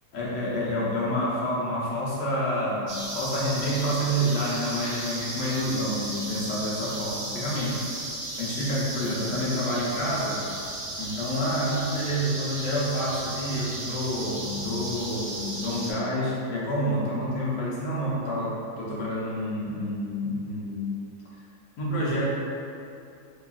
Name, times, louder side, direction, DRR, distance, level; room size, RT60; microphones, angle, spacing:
voice 1, 0.1-7.8 8.4-10.4 11.0-18.5 18.8-20.9 21.8-22.2, equal, 70° left, -6 dB, 1.2 m, -28 dB
sound 1, 2.9-15.9, right 1 dB, 75° right, 1.1 m, -35 dB
3.3 x 2.3 x 2.3 m, 2.6 s
omnidirectional pair, 2.0 m